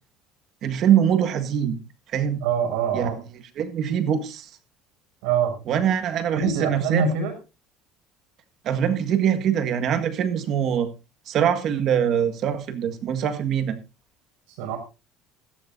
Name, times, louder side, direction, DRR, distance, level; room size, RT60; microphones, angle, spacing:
voice 1, 0.6-1.8 2.1-2.4 2.9-3.2 3.6-4.5 5.7-7.1 8.7-10.9 11.3-13.8, right 9 dB, 45° right, 9 dB, 1.7 m, -23 dB
voice 2, 2.4-3.2 5.2-5.5 6.4-7.3 14.6-14.8, right 6 dB, 85° right, 4 dB, 6.2 m, -24 dB
15.5 x 14.0 x 2.7 m, 0.30 s
cardioid pair, 145°, 0 cm